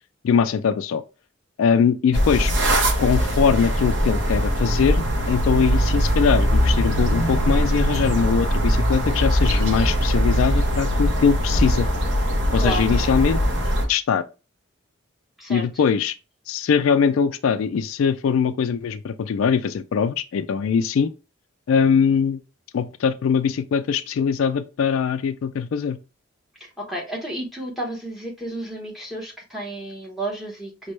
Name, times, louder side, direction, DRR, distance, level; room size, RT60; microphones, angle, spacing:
voice 1, 0.2-1.0 1.6-2.5 3.0-11.9 12.5-13.4 13.9-14.2 15.5-16.1 16.5-21.1 21.7-22.4 22.7-26.0, left 6 dB, 85° left, 0.3 m, -21 dB
sound 1, 2.1-13.8, equal, 60° right, 0.8 m, -21 dB
voice 2, 12.6-12.9 15.4-15.7 26.6-30.9, right 1 dB, ahead, 0.9 m, -32 dB
5.1 x 2.2 x 3.1 m
head